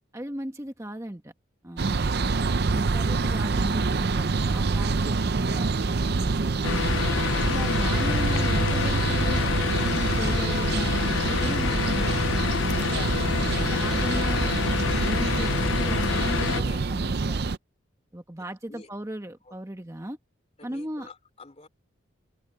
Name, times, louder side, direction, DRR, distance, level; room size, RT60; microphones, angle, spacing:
voice 1, 0.1-1.3 1.6-2.0 2.7-6.9 7.4-9.4 9.8-13.1 13.5-17.5 18.1-20.2 20.6-21.1, right 1 dB, 15° right, 1.3 m, -36 dB
sound 1, 1.8-17.6, right 3 dB, 55° right, 0.6 m, -26 dB
sound 2, 6.6-16.6, left 7 dB, 65° left, 0.4 m, -28 dB
voice 2, 16.5-17.1 18.7-18.9 19.5-19.6 20.6-21.7, left 2 dB, 30° left, 2.9 m, -47 dB
head